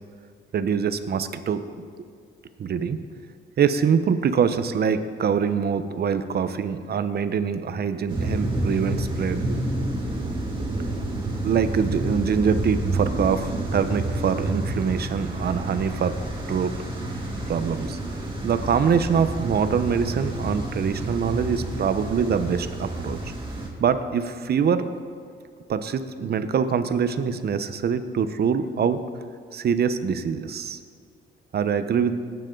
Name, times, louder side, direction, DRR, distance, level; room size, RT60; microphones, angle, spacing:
voice 1, 0.5-1.6 2.6-3.0 3.6-9.4 11.4-16.1 16.5-16.7 17.5-18.0 18.4-23.3 23.8-24.9 25.7-29.0 29.5-30.8 31.5-32.2, right 6 dB, 55° right, 10 dB, 0.9 m, -24 dB
sound 1, 8.1-23.7, right 2 dB, 25° right, 3.0 m, -29 dB
19.5 x 9.3 x 3.9 m, 2.2 s
cardioid pair, 90°, 20 cm